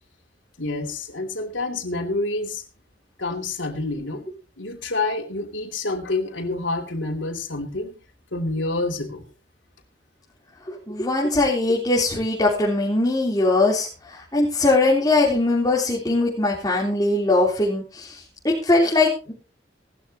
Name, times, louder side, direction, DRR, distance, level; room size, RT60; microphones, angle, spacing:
voice 1, 0.6-2.6 3.2-4.3 4.6-7.9 8.3-9.2, left 2 dB, 90° left, 1 dB, 2.9 m, -28 dB
voice 2, 10.7-19.3, left 2 dB, 20° left, -5 dB, 3.6 m, -21 dB
18.5 x 13.0 x 3.0 m, 0.32 s
head